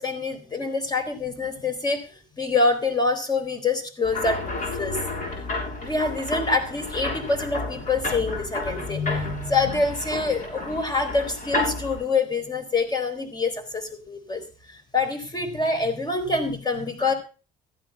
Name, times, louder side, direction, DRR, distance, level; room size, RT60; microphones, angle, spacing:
voice 1, 0.0-5.0 5.8-14.4 14.7-17.1, left 3 dB, 25° left, 7 dB, 4.0 m, -26 dB
sound 1, 4.0-12.0, left 2 dB, 50° left, 7.5 m, -31 dB
15.0 x 9.1 x 5.7 m, 0.36 s
cardioid pair, 110°, 17 cm